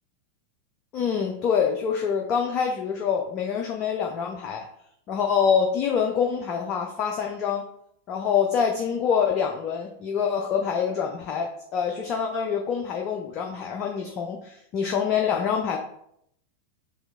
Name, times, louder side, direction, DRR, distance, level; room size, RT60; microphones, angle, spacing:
voice 1, 0.9-4.6 5.1-7.6 8.1-15.8, left 7 dB, 35° left, 2 dB, 0.5 m, -25 dB
6.2 x 2.9 x 2.4 m, 0.71 s
figure-of-eight pair, 90°, 0 cm